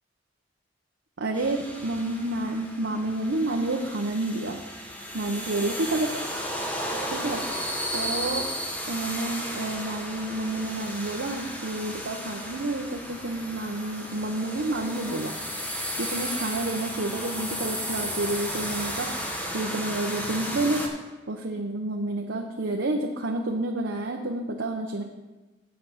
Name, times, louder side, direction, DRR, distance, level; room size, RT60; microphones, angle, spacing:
voice 1, 1.2-4.6 5.1-6.4 7.1-7.4 7.9-8.5 8.9-15.3 15.9-19.1 19.5-20.8 21.3-25.0, right 2 dB, 90° right, 1 dB, 0.8 m, -29 dB
sound 1, 1.3-20.9, equal, 10° left, 1.1 m, -34 dB
7.7 x 7.5 x 5.7 m, 1.2 s
head